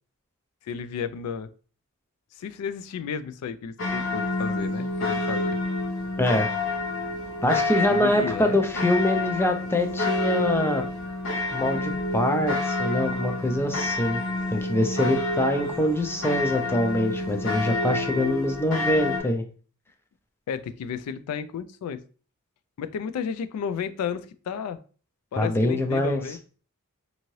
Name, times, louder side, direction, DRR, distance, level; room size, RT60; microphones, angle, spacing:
voice 1, 0.7-1.5 2.4-5.6 7.9-8.6 20.5-22.0 22.8-24.8 25.3-26.4, left 7 dB, 90° left, 15 dB, 0.3 m, -32 dB
sound 1, 3.8-19.2, left 2 dB, 60° left, 0.7 m, -28 dB
voice 2, 6.2-6.5 7.4-10.9 11.5-14.2 14.5-19.4 25.4-26.4, left 1 dB, 10° left, 5 dB, 0.3 m, -24 dB
2.7 x 2.6 x 3.0 m, 0.39 s
head